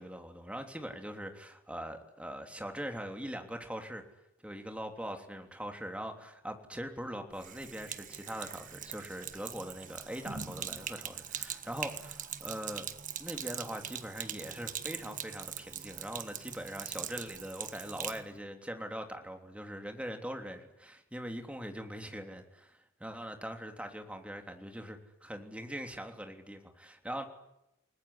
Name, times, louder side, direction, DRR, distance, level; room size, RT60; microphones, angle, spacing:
voice 1, 0.0-4.0 4.4-12.1 12.4-12.9 13.2-27.2, equal, 5° right, 5 dB, 3.3 m, -42 dB
Sink (filling or washing), 7.3-18.2, right 9 dB, 40° right, 1.5 m, -42 dB
29.5 x 20.0 x 9.9 m, 0.87 s
head